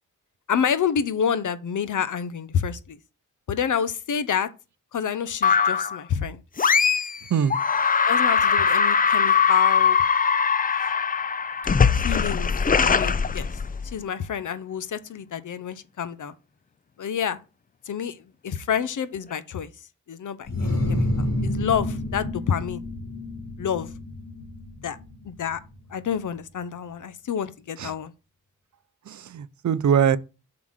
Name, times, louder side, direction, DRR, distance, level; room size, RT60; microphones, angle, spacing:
voice 1, 0.5-3.0 3.5-4.5 4.9-6.4 8.1-10.0 12.0-13.5 13.9-16.3 17.0-17.4 17.9-18.2 18.4-19.7 20.1-22.8 23.6-23.9 24.8-25.0 25.2-25.6 25.9-28.1, left 7 dB, 65° left, 0.8 m, -28 dB
sound 1, 5.4-6.0 6.6-7.2 7.5-14.0, left 6 dB, 25° left, 0.4 m, -21 dB
sound 2, 20.5-26.0, left 1 dB, 50° left, 2.1 m, -29 dB
voice 2, 29.1-30.2, right 8 dB, 60° right, 0.6 m, -22 dB
7.4 x 4.0 x 6.3 m
wide cardioid pair, 100°, 32 cm